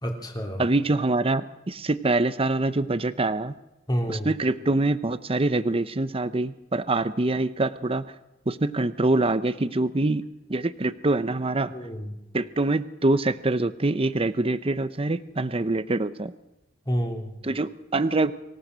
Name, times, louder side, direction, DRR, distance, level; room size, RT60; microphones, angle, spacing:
voice 1, 0.0-0.6 3.9-4.4 11.7-12.2 16.8-17.4, equal, 20° left, 2 dB, 3.1 m, -29 dB
voice 2, 0.6-3.5 4.1-8.0 8.5-11.7 12.3-16.3 17.4-18.3, right 2 dB, 30° right, 13 dB, 0.8 m, -25 dB
25.0 x 16.5 x 6.4 m, 0.91 s
head